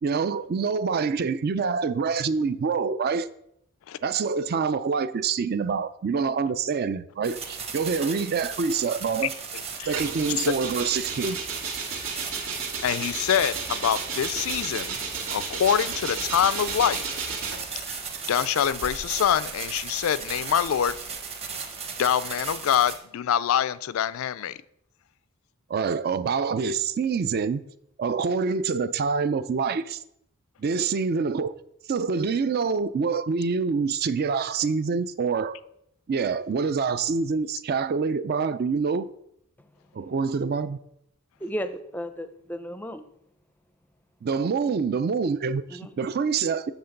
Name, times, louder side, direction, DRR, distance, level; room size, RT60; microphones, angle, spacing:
voice 1, 0.0-3.3 4.0-9.3 9.8-11.4 25.7-27.6 28.0-30.0 30.6-31.5 31.9-35.6 36.1-39.1 39.9-40.8 44.2-46.7, right 5 dB, 45° right, 0.4 m, -26 dB
sound 1, 7.2-23.0, right 5 dB, 30° right, 1.0 m, -36 dB
sound 2, 9.9-17.8 18.6-21.1, right 5 dB, 75° right, 1.9 m, -34 dB
voice 2, 12.8-15.0 15.3-17.2 17.8-18.0 18.3-21.0 22.0-24.6, left 9 dB, 70° left, 0.3 m, -25 dB
voice 3, 41.4-43.1 45.7-45.9, equal, 10° left, 0.5 m, -34 dB
8.1 x 3.8 x 6.5 m
head